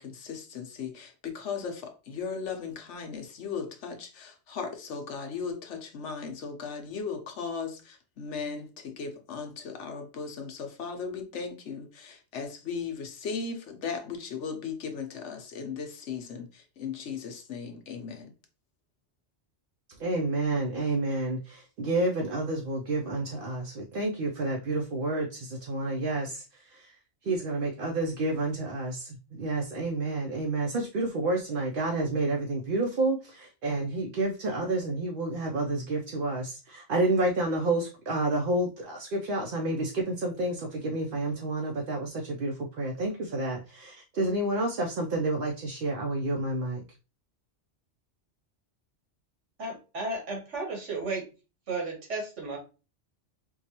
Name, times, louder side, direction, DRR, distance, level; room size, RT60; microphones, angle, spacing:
voice 1, 0.0-18.3, left 5 dB, 80° left, 4 dB, 1.1 m, -37 dB
voice 2, 20.0-26.9 27.2-46.8, right 2 dB, 55° right, 0 dB, 0.7 m, -29 dB
voice 3, 49.6-51.3 51.7-52.6, right 3 dB, 85° right, 1 dB, 1.6 m, -33 dB
4.5 x 2.3 x 2.8 m, 0.31 s
omnidirectional pair, 1.2 m